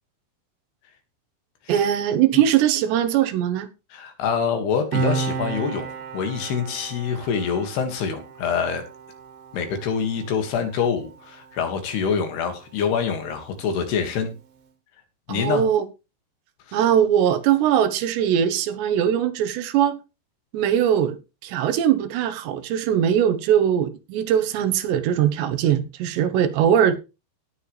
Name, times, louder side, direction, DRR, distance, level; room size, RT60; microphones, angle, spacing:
voice 1, 1.7-3.7 15.3-15.9 16.7-20.0 20.5-21.2 21.4-27.0, right 9 dB, 90° right, 3.4 m, -21 dB
voice 2, 3.9-5.9 6.1-8.8 9.5-14.3 15.3-15.6 16.7-16.8, left 6 dB, 75° left, 4.0 m, -25 dB
Piano, 4.9-11.9 12.2-12.4, right 4 dB, 65° right, 3.4 m, -32 dB
18.0 x 7.0 x 3.3 m
omnidirectional pair, 4.8 m